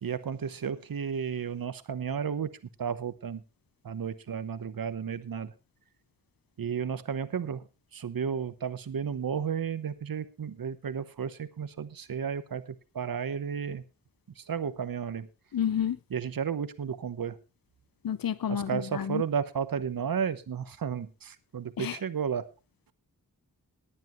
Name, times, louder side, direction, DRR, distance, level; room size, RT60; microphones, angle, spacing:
voice 1, 0.0-3.4 3.8-5.5 6.6-7.6 7.9-13.8 14.4-15.3 16.1-17.4 18.5-22.5, right 7 dB, 75° right, 1.0 m, -33 dB
voice 2, 15.5-16.0 18.0-19.2 21.8-22.0, left 9 dB, 75° left, 0.7 m, -30 dB
18.5 x 10.0 x 3.1 m
cardioid pair, 50°, 35 cm